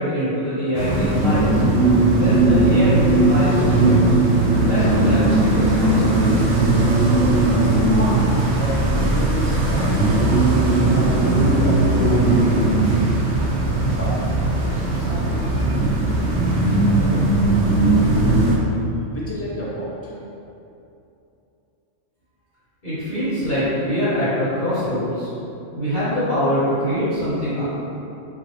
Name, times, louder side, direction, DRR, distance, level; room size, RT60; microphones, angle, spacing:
voice 1, 0.0-1.6 2.1-4.0 4.6-6.7 22.8-25.3 25.7-27.6, equal, 40° left, -14 dB, 1.3 m, -23 dB
sound 1, 0.7-18.6, right 2 dB, 85° right, 1.1 m, -18 dB
voice 2, 7.5-10.3 10.8-12.5 12.7-13.3 14.0-14.2 14.6-17.7 19.0-20.2, left 1 dB, 15° left, -8 dB, 0.7 m, -33 dB
4.4 x 3.1 x 3.1 m, 2.8 s
omnidirectional pair, 1.3 m